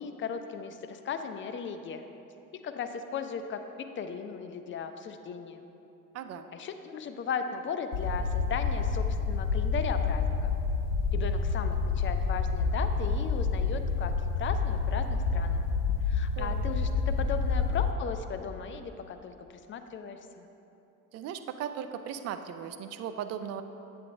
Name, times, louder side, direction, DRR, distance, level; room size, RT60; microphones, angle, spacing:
voice 1, 0.0-2.0 2.6-5.6 6.5-10.5 11.1-15.6 16.1-20.5, left 6 dB, 25° left, 8 dB, 0.4 m, -37 dB
voice 2, 6.1-6.5 16.4-16.7 21.1-23.6, right 8 dB, 35° right, 9 dB, 0.5 m, -37 dB
sound 1, 7.9-17.9, left 4 dB, 90° left, 0.6 m, -28 dB
8.6 x 7.6 x 3.4 m, 2.9 s
hypercardioid pair, 65°, 47 cm